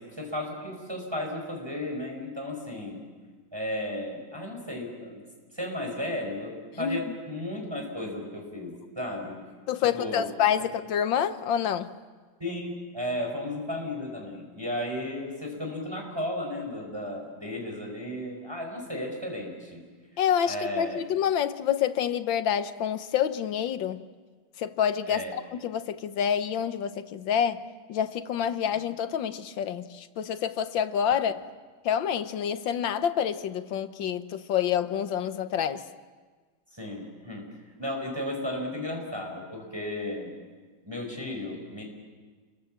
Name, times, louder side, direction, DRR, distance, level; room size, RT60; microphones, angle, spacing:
voice 1, 0.0-3.0 3.5-5.2 5.5-9.4 9.9-10.3 12.4-19.8 20.4-21.0 25.1-25.3 36.7-37.4 37.8-40.3 40.8-41.8, left 1 dB, 15° right, 0 dB, 5.0 m, -34 dB
voice 2, 9.7-11.9 20.2-24.0 24.6-27.6 27.9-31.5 31.9-35.8, left 9 dB, 85° left, 11 dB, 1.7 m, -27 dB
28.5 x 23.0 x 7.6 m, 1.4 s
omnidirectional pair, 2.0 m